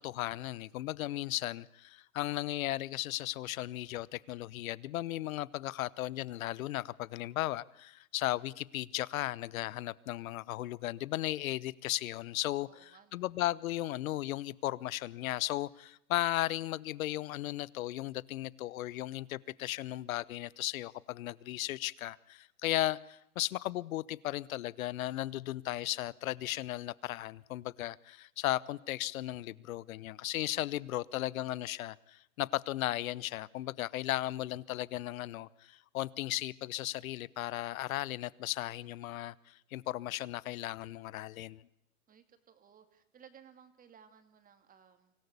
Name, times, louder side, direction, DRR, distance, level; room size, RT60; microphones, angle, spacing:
voice 1, 0.0-12.7 13.1-41.6, left 15 dB, 65° left, 1.0 m, -36 dB
voice 2, 12.7-13.3 42.1-45.1, right 7 dB, 20° right, 2.3 m, -59 dB
25.0 x 17.5 x 8.3 m
hypercardioid pair, 135°, 45 cm